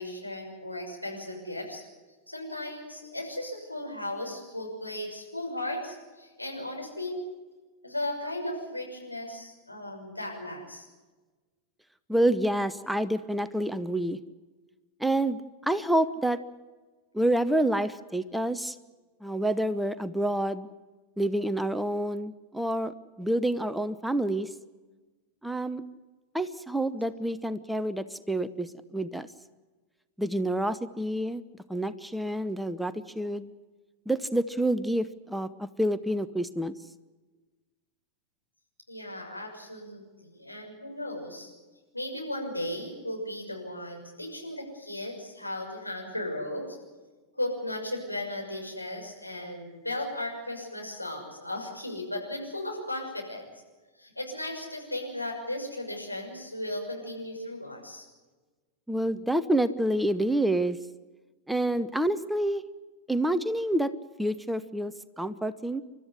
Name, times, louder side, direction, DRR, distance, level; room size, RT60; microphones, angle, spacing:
voice 1, 0.0-1.8 2.3-7.2 7.8-10.9 38.9-41.5 41.9-46.8 47.3-53.4 54.0-58.1, left 1 dB, 85° left, 0 dB, 6.3 m, -36 dB
voice 2, 12.1-14.2 15.0-16.4 17.1-18.8 19.2-20.7 21.2-24.5 25.4-25.8 26.3-29.3 30.2-31.4 31.7-33.5 34.1-36.7 58.9-60.8 61.5-62.6 63.1-63.9 64.2-65.8, right 1 dB, 5° right, 13 dB, 0.9 m, -28 dB
29.5 x 13.0 x 9.8 m, 1.3 s
figure-of-eight pair, 90°, 0 cm